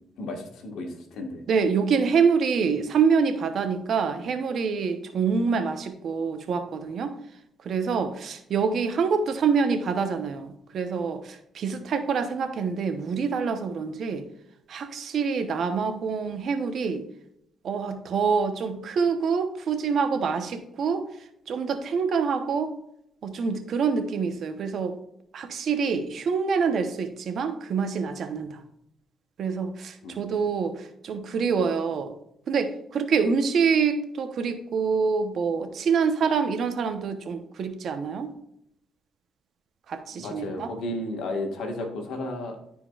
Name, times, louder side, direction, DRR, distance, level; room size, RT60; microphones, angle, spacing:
voice 1, 0.2-1.5 30.0-30.3 40.1-42.6, left 1 dB, 80° left, 3 dB, 1.6 m, -33 dB
voice 2, 1.5-7.2 7.6-14.2 14.7-17.0 17.6-21.0 21.5-22.7 23.2-24.9 25.3-28.6 29.4-32.1 32.5-38.3 39.9-40.7, right 5 dB, 60° right, 7 dB, 1.0 m, -26 dB
13.5 x 4.5 x 2.5 m, 0.77 s
cardioid pair, 90°, 0 cm